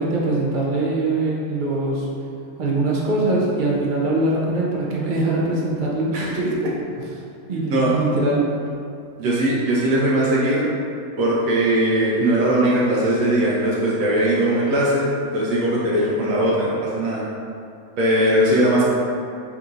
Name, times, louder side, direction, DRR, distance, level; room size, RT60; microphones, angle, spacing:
voice 1, 0.0-2.1 2.6-6.6 7.5-8.4, right 2 dB, 65° right, -4 dB, 0.5 m, -22 dB
voice 2, 9.2-10.7 11.2-17.2 18.0-18.8, right 1 dB, 85° right, -6 dB, 1.0 m, -19 dB
3.6 x 2.8 x 2.4 m, 2.4 s
omnidirectional pair, 1.4 m